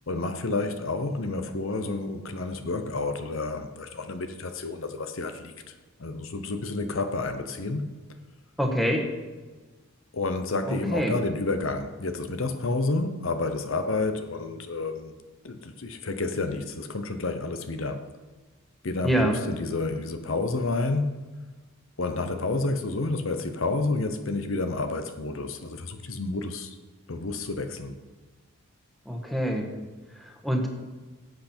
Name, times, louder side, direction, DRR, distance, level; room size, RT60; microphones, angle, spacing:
voice 1, 0.1-5.7 6.0-7.9 10.1-15.1 15.4-18.1 18.8-21.2 22.0-26.8 27.1-28.0, left 3 dB, 65° left, 9 dB, 0.9 m, -30 dB
voice 2, 8.6-9.1 10.7-11.1 19.0-19.4 29.0-29.7 30.1-30.7, equal, ahead, 1 dB, 1.4 m, -26 dB
17.0 x 7.9 x 4.5 m, 1.3 s
head